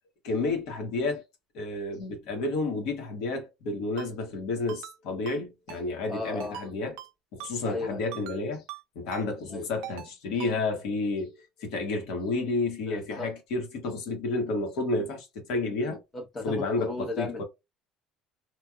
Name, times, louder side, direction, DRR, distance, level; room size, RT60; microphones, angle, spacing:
voice 1, 0.2-1.2 1.5-7.0 7.3-8.6 8.9-16.0 16.4-17.4, left 3 dB, 65° left, 1.3 m, -31 dB
Ringtone, 4.0-4.1 4.7-5.0 5.3-5.4 5.7-5.8 6.4-6.7 7.0-7.1 7.4-7.5 8.1-8.4 8.7-8.8 9.1-9.3 9.8-10.1 10.4-10.5, right 13 dB, 75° right, 0.4 m, -41 dB
voice 2, 6.1-6.6 7.6-8.0 9.5-9.7 12.9-13.3 15.9-17.4, left 2 dB, 20° left, 1.0 m, -35 dB
3.1 x 2.4 x 2.3 m
cardioid pair, 170°, 0 cm